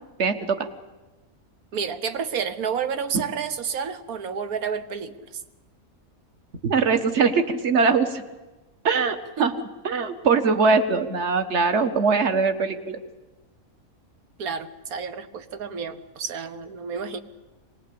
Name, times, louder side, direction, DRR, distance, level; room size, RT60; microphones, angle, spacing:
voice 1, 0.2-0.7 3.1-3.2 6.6-8.2 8.8-9.5 9.8-13.0, right 5 dB, 55° right, 9 dB, 1.6 m, -22 dB
voice 2, 1.7-5.3 9.4-9.5 14.4-17.2, right 6 dB, 90° right, 11 dB, 1.6 m, -30 dB
23.5 x 19.0 x 8.6 m, 1.1 s
omnidirectional pair, 1.5 m